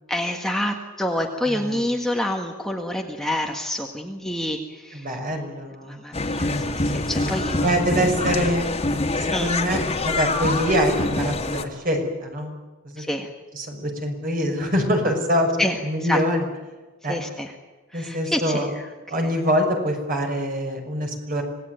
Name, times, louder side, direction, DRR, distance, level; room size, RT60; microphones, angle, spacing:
voice 1, 0.1-5.2 5.9-7.6 9.3-9.5 13.0-13.3 15.6-16.2 17.0-17.5 17.9-18.9 19.1-19.4, left 1 dB, ahead, 1 dB, 1.7 m, -27 dB
voice 2, 1.5-1.8 4.9-6.0 7.6-8.7 9.1-12.6 12.9-13.0 13.5-15.5 15.8-16.4 17.0-17.2 17.9-18.7 19.1-21.4, equal, 45° right, 3 dB, 5.8 m, -24 dB
sound 1, 6.1-11.6, left 2 dB, 30° left, 2.3 m, -25 dB
26.5 x 19.0 x 9.3 m, 1.2 s
head